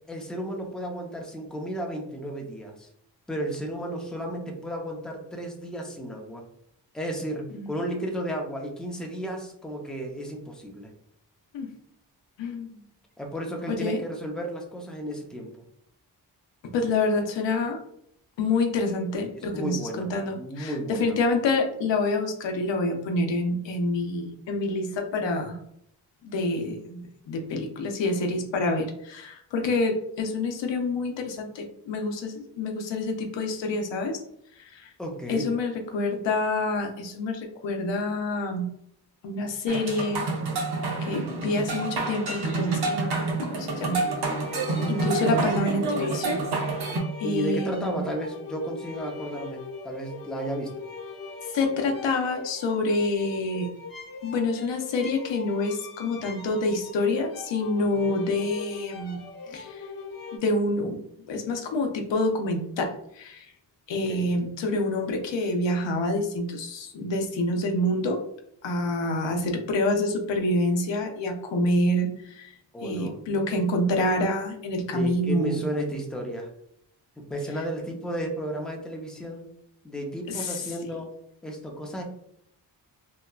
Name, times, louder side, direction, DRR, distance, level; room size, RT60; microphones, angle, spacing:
voice 1, 0.1-2.9 3.3-6.4 6.9-10.9 13.2-15.6 19.3-21.2 35.0-35.5 47.2-50.7 57.9-58.2 64.1-64.3 72.7-73.2 74.9-76.5 77.2-79.5 79.8-81.1 81.4-82.0, right 1 dB, ahead, 1 dB, 0.5 m, -33 dB
voice 2, 12.4-12.8 13.7-14.0 16.6-17.8 18.4-25.6 26.2-34.2 34.6-34.9 35.3-38.7 39.2-40.2 41.0-44.0 44.9-46.4 46.8-46.9 47.2-48.0 51.5-53.7 54.2-59.2 59.5-59.8 60.3-61.0 61.3-63.5 63.9-68.2 68.6-72.6 72.8-75.6 80.3-80.6, left 2 dB, 90° left, 4 dB, 0.5 m, -27 dB
sound 1, 39.7-47.0, right 3 dB, 65° right, 0.7 m, -28 dB
sound 2, 44.0-60.4, left 4 dB, 55° left, 0.7 m, -41 dB
2.9 x 2.2 x 2.2 m, 0.72 s
cardioid pair, 65°, 43 cm